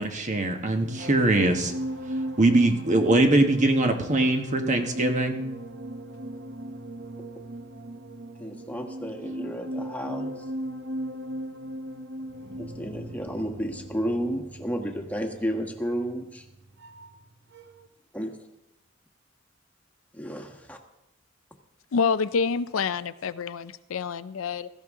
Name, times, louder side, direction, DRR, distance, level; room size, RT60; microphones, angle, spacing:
voice 1, 0.0-1.7 2.4-5.4, right 2 dB, 40° right, 5 dB, 1.2 m, -22 dB
sound 1, 0.6-17.3 17.5-17.9, right 1 dB, 60° right, 0.9 m, -36 dB
voice 2, 8.4-10.3 12.6-16.4 18.1-18.3 20.1-20.8, equal, 5° left, 2 dB, 1.5 m, -32 dB
voice 3, 21.9-24.7, left 5 dB, 80° left, 14 dB, 0.5 m, -27 dB
16.5 x 14.0 x 3.7 m, 0.91 s
head